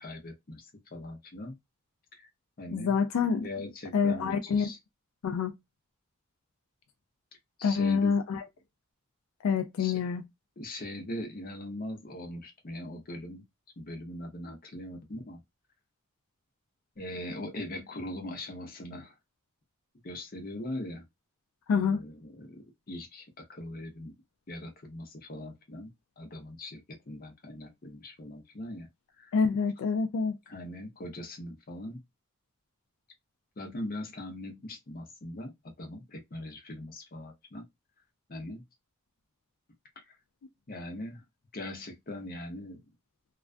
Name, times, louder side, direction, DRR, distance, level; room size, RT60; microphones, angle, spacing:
voice 1, 0.0-1.6 2.1-2.3 2.6-2.9 3.4-4.8 7.6-8.2 9.8-10.0 10.6-13.4 13.8-15.4 17.0-19.2 20.0-21.0 21.7-24.2 24.5-28.9 29.2-29.3 30.5-32.0 33.6-37.6 38.3-38.6 40.0-40.2 40.7-41.2 41.5-42.8, left 1 dB, 45° left, 0.7 m, -41 dB
voice 2, 2.7-3.5 3.9-4.7 5.2-5.5 7.6-8.4 9.4-10.2 21.7-22.0 29.3-30.3, left 5 dB, 75° left, 0.3 m, -27 dB
2.3 x 2.2 x 2.4 m
head